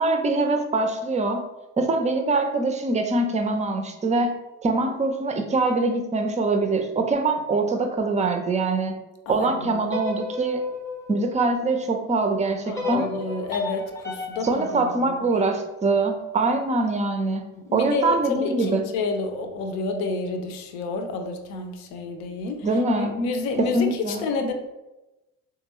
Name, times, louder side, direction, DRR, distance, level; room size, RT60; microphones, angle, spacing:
voice 1, 0.0-1.4 1.8-8.9 9.3-10.6 11.1-13.1 14.4-17.4 17.7-18.9 22.6-23.1 23.6-24.3, right 3 dB, 15° right, 6 dB, 0.5 m, -23 dB
voice 2, 9.3-9.8 12.7-14.6 15.0-15.1 17.7-22.7 22.9-23.9 24.2-24.5, left 3 dB, 60° left, 6 dB, 0.7 m, -29 dB
sound 1, 9.8-12.0 12.7-15.9, left 3 dB, 5° left, 0.8 m, -35 dB
3.6 x 3.6 x 3.0 m, 1.0 s
figure-of-eight pair, 50°, 43 cm